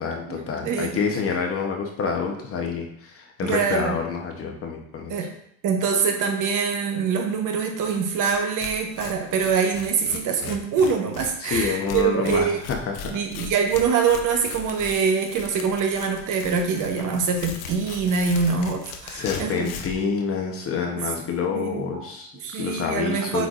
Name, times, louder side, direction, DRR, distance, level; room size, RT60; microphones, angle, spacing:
voice 1, 0.0-5.1 11.4-13.1 19.1-22.3 22.6-23.5, left 5 dB, 30° left, 2 dB, 1.0 m, -27 dB
voice 2, 0.6-1.0 3.4-4.0 5.1-5.3 5.6-12.6 13.0-19.7 21.5-22.1 22.4-23.5, right 6 dB, 45° right, 3 dB, 1.1 m, -24 dB
Tearing, 7.9-8.0 8.2-8.3 8.6-20.0, left 6 dB, 60° left, 0.9 m, -38 dB
8.1 x 4.5 x 2.5 m, 0.70 s
supercardioid pair, 125°, 44 cm